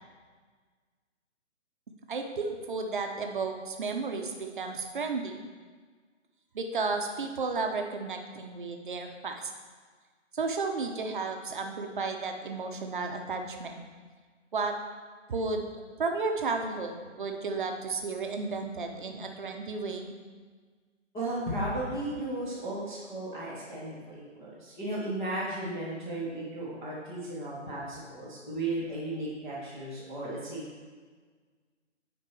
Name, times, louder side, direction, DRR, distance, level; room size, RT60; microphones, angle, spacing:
voice 1, 2.1-5.4 6.5-9.4 10.3-13.8 14.5-14.8 15.3-15.7 16.0-20.2, right 4 dB, 40° right, 4 dB, 0.9 m, -33 dB
voice 2, 21.1-30.6, right 1 dB, 5° left, -13 dB, 0.8 m, -35 dB
9.0 x 4.5 x 4.5 m, 1.5 s
figure-of-eight pair, 150°, 37 cm